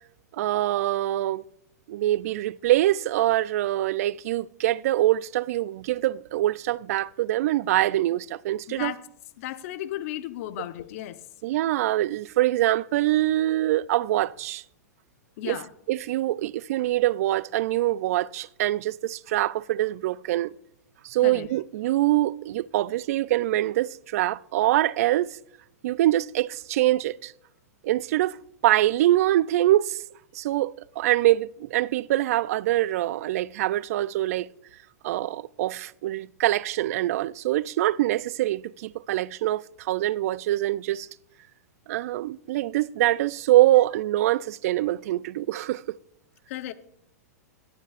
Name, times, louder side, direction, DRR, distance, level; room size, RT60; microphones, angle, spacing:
voice 1, 0.3-1.4 1.9-8.9 11.4-14.6 15.4-15.6 15.9-20.5 21.0-25.4 25.8-27.3 27.8-28.4 28.6-30.0 30.3-34.5 35.0-41.1 41.9-46.0, right 15 dB, 60° right, 0.4 m, -24 dB
voice 2, 9.4-11.2 15.4-15.7 21.2-21.5 46.5-46.7, left 14 dB, 55° left, 0.9 m, -34 dB
22.5 x 11.5 x 2.5 m
hypercardioid pair, 115°, 9 cm